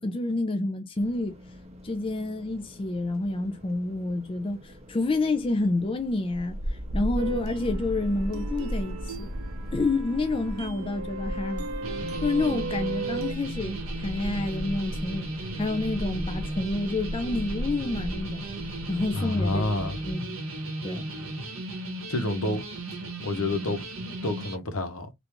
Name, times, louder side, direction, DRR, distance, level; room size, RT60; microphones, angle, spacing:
voice 1, 0.0-1.4 1.8-9.3 9.7-11.7 12.2-18.5 18.9-19.7 20.0-20.4 20.8-21.1, left 2 dB, 25° left, 0.4 m, -29 dB
sound 1, 1.0-20.1, equal, 30° right, 0.7 m, -37 dB
sound 2, 7.2-13.3, right 4 dB, 85° right, 0.5 m, -36 dB
sound 3, 11.8-24.6, right 1 dB, 65° right, 0.9 m, -36 dB
voice 2, 19.1-20.0 22.1-22.6 23.2-23.8 24.2-25.1, left 2 dB, 75° left, 0.8 m, -28 dB
3.5 x 2.5 x 2.9 m
head